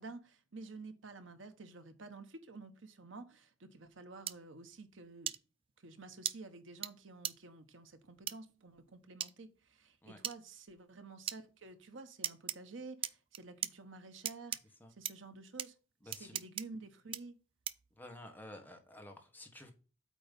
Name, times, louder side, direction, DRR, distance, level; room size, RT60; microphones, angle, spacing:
voice 1, 0.0-5.3 5.8-14.6 15.0-15.7 16.0-17.4, right 3 dB, 70° right, 1.0 m, -51 dB
sound 1, 4.3-4.4 5.3-5.4 6.3-6.4 6.8-6.9 7.2-7.3 8.3-8.4 9.2-9.3 10.2-10.4 11.3-11.4 12.2-12.6 13.0-13.7 14.3-14.6 15.1-15.2 15.6-15.7 16.1-16.6 17.1-17.2 17.7-17.9, right 10 dB, 30° right, 0.3 m, -37 dB
voice 2, 16.0-16.4 18.0-19.7, left 1 dB, 10° left, 1.3 m, -51 dB
8.4 x 3.1 x 5.3 m
head